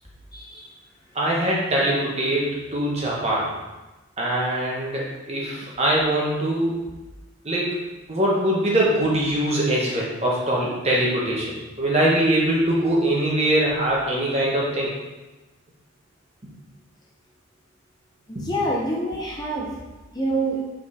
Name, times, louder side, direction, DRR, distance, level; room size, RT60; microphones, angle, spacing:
voice 1, 0.3-0.7 18.4-19.7 20.1-20.6, right 1 dB, 20° left, -4 dB, 0.7 m, -26 dB
voice 2, 1.1-3.5 4.2-6.8 7.4-7.8 8.1-14.9 18.3-18.4, right 1 dB, 30° right, -4 dB, 1.3 m, -22 dB
5.4 x 4.4 x 4.3 m, 1.1 s
head